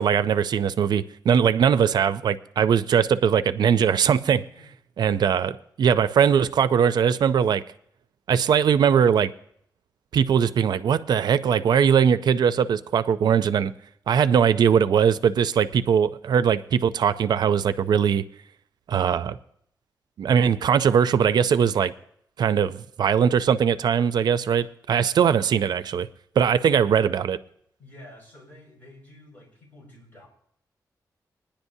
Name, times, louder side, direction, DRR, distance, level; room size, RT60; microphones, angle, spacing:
voice 1, 0.0-4.4 5.0-7.6 8.3-9.3 10.1-13.7 14.1-18.2 18.9-19.4 20.2-21.9 22.4-26.1 26.4-27.4, right 7 dB, 85° right, 0.4 m, -20 dB
voice 2, 27.8-30.3, left 1 dB, 25° left, 5.4 m, -49 dB
23.0 x 10.0 x 2.7 m
wide cardioid pair, 145°, 7 cm